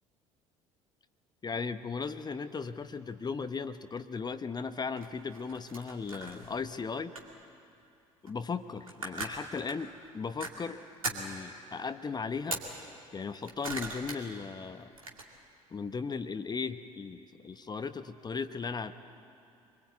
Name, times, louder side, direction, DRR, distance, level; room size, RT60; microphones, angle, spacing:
voice 1, 1.4-7.1 8.2-12.6 13.1-14.9 15.7-18.9, left 5 dB, 25° left, 10 dB, 0.9 m, -37 dB
sound 1, 5.0-6.7 7.2-7.4 8.3-8.4 8.7-9.7 10.4-10.5 11.0-11.4 12.4-12.7 13.2-14.2 14.6-15.2, right 2 dB, 85° right, 2.2 m, -39 dB
25.0 x 22.0 x 8.4 m, 2.6 s
figure-of-eight pair, 60°, 17 cm